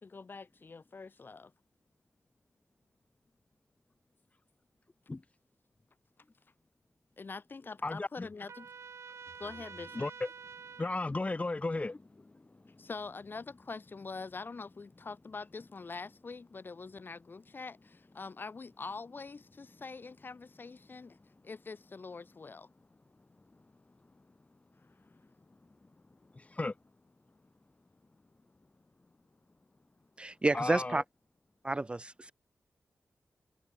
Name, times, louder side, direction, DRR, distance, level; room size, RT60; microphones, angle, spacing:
voice 1, 0.0-1.5 7.2-8.7 9.4-10.0 12.8-21.2 21.4-22.7, left 4 dB, 45° left, 1.1 m, -44 dB
voice 2, 7.8-8.3 9.9-10.3 10.8-12.0 26.3-26.7 30.5-31.0, left 2 dB, 30° left, 2.2 m, -34 dB
Trumpet, 8.5-11.0, right 6 dB, 75° right, 3.8 m, -48 dB
voice 3, 30.2-31.0 31.6-32.3, right 2 dB, 20° right, 0.4 m, -30 dB
wide cardioid pair, 80°, 5 cm